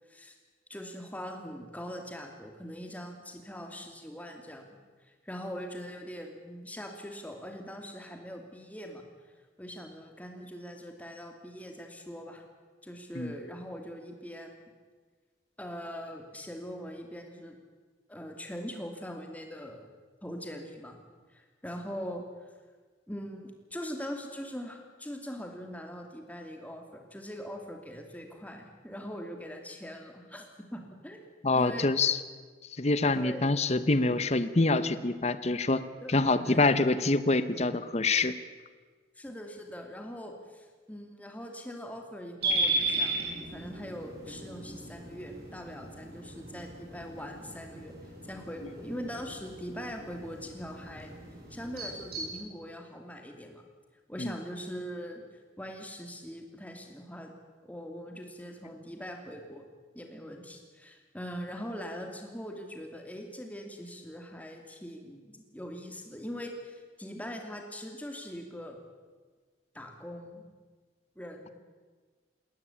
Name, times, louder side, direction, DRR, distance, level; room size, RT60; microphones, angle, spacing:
voice 1, 0.7-4.7 5.0-9.0 9.6-12.4 12.8-14.7 15.6-17.5 18.1-19.9 20.2-21.0 21.3-22.5 23.1-31.3 31.5-31.9 33.1-33.5 36.0-36.6 39.2-51.1 51.5-53.6 54.1-55.2 55.6-57.3 57.6-59.6 59.9-68.8 69.7-70.4 71.1-71.5, equal, 10° left, 3 dB, 2.9 m, -42 dB
voice 2, 31.4-32.2 32.8-35.8 36.1-38.3 54.2-54.3, left 3 dB, 40° left, 13 dB, 0.9 m, -26 dB
sound 1, 42.4-52.3, right 2 dB, 60° right, 7.7 m, -36 dB
21.0 x 17.0 x 8.7 m, 1.4 s
head